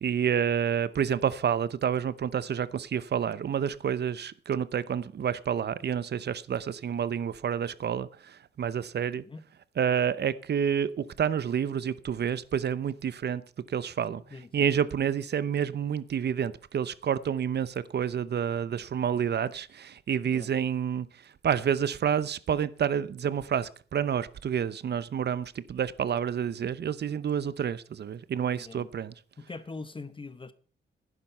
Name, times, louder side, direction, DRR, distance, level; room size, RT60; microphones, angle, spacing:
voice 1, 0.0-9.2 9.8-13.4 13.7-14.2 14.5-21.1 21.4-29.1, right 8 dB, 65° right, 0.8 m, -29 dB
voice 2, 14.3-14.7 20.2-20.5 28.5-28.9 29.4-30.5, left 3 dB, 25° left, 0.9 m, -42 dB
11.0 x 10.0 x 5.6 m
cardioid pair, 75°, 19 cm